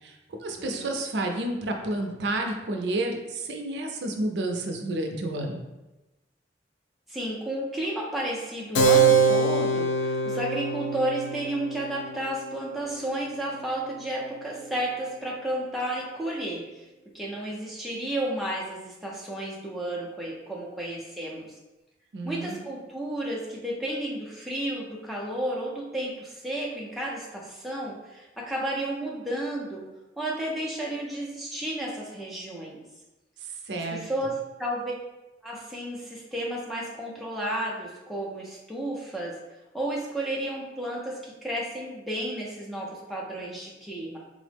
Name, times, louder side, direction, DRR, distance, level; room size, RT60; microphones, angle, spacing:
voice 1, 0.0-5.6 22.1-22.6 33.4-34.0, right 2 dB, 80° right, 3 dB, 0.4 m, -30 dB
voice 2, 0.6-0.9 7.1-16.8 17.1-21.5 22.2-29.8 30.2-32.8 33.7-34.9 35.4-39.4 39.7-44.2, right 1 dB, ahead, -5 dB, 0.5 m, -32 dB
Keyboard (musical), 8.7-14.9, right 4 dB, 75° left, 0.3 m, -25 dB
3.6 x 2.0 x 3.3 m, 1.0 s
head